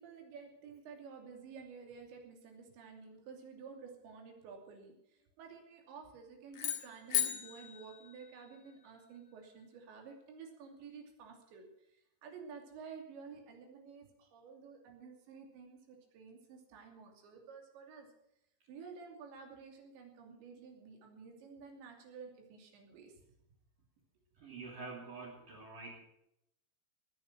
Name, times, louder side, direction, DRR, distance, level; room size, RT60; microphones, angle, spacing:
voice 1, 0.0-11.7 12.2-18.1 18.7-23.1, right 5 dB, 80° right, 2 dB, 5.1 m, -52 dB
sound 1, 6.5-8.9, left 11 dB, 50° left, 2.7 m, -37 dB
voice 2, 24.3-26.0, right 3 dB, 50° right, -4 dB, 4.2 m, -47 dB
19.0 x 10.5 x 6.2 m, 0.81 s
omnidirectional pair, 5.1 m